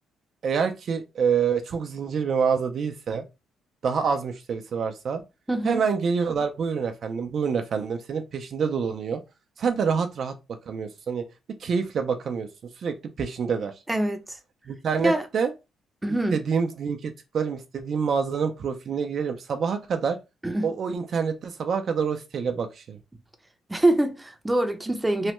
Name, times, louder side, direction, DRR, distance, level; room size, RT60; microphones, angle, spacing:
voice 1, 0.4-3.2 3.8-5.2 5.6-9.2 9.6-10.4 10.7-11.2 11.6-12.5 12.8-13.7 14.7-15.5 16.3-20.2 20.6-23.0 25.2-25.3, right 6 dB, 55° right, 0.4 m, -27 dB
voice 2, 5.5-5.8 13.9-14.4 15.0-15.2 16.0-16.4 20.4-20.7 23.7-25.3, right 1 dB, 10° right, 0.6 m, -24 dB
3.1 x 2.1 x 3.0 m
cardioid pair, 90°, 0 cm